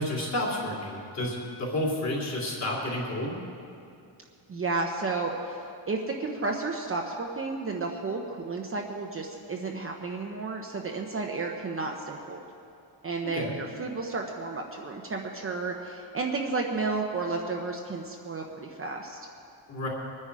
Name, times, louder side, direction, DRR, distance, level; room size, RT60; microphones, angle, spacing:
voice 1, 0.0-3.4 13.3-13.5 19.7-19.9, left 1 dB, 35° left, -3 dB, 3.2 m, -30 dB
voice 2, 4.5-5.6 5.9-12.4 13.0-19.2, right 3 dB, 30° right, 1 dB, 0.9 m, -32 dB
23.0 x 10.0 x 4.8 m, 2.5 s
wide cardioid pair, 175°, 46 cm